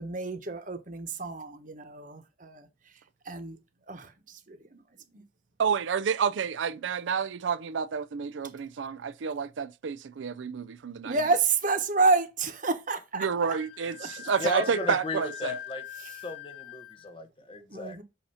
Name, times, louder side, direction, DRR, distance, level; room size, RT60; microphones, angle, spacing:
voice 1, 0.0-3.6 3.9-4.8 5.1-5.2 11.0-13.5 14.0-14.5 16.0-16.2 17.7-18.0, right 3 dB, 45° right, 1.2 m, -30 dB
voice 2, 5.6-11.2 13.2-15.5, right 6 dB, 90° right, 0.4 m, -29 dB
Wind instrument woodwind instrument, 13.4-17.2, left 12 dB, 85° left, 0.9 m, -43 dB
voice 3, 14.4-15.8 16.2-18.0, left 2 dB, 30° left, 0.9 m, -34 dB
7.9 x 2.9 x 5.6 m
head